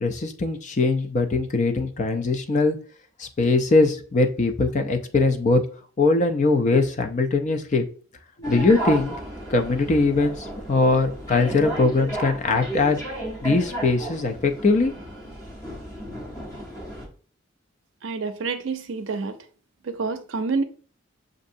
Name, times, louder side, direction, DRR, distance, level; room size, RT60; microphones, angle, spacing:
voice 1, 0.0-2.8 3.2-5.6 6.0-7.8 8.5-9.2 9.5-13.0 13.4-14.9, left 3 dB, 35° left, 0.4 m, -21 dB
sound 1, 8.4-17.1, right 1 dB, 15° left, 0.9 m, -34 dB
voice 2, 18.0-19.4 19.8-20.6, right 4 dB, 70° right, 0.5 m, -28 dB
6.3 x 2.6 x 2.6 m
head